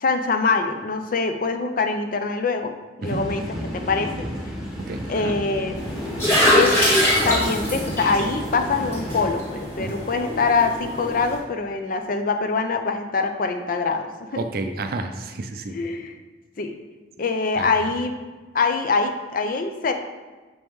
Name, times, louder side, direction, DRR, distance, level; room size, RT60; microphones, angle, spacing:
voice 1, 0.0-2.7 3.0-3.5 3.7-4.3 5.1-5.8 6.5-6.8 7.2-14.4 15.7-16.2 16.6-16.8 17.2-18.2 18.5-19.9, left 4 dB, 50° left, 7 dB, 0.5 m, -24 dB
sound 1, 3.0-9.3, equal, 5° right, 1.1 m, -32 dB
voice 2, 4.9-5.3 9.8-10.0 14.4-15.8 17.6-17.7, right 2 dB, 50° right, 7 dB, 0.5 m, -30 dB
sound 2, 5.8-11.4, equal, 15° left, 1.5 m, -23 dB
6.2 x 5.3 x 3.1 m, 1.3 s
head